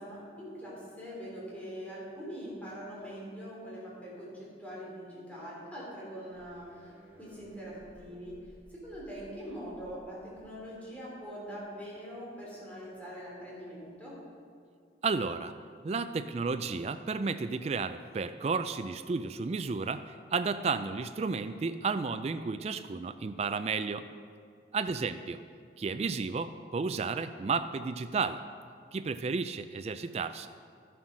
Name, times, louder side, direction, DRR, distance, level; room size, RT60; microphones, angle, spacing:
voice 1, 0.0-8.4 8.7-14.2 25.1-25.2, equal, 10° left, -6 dB, 3.4 m, -43 dB
sound 1, 6.2-11.6, equal, 15° right, 1.7 m, -57 dB
voice 2, 15.0-15.5 15.8-24.0 24.7-25.4 25.8-28.4 28.9-30.5, right 4 dB, 35° right, 10 dB, 0.3 m, -32 dB
12.5 x 7.6 x 6.1 m, 2.1 s
head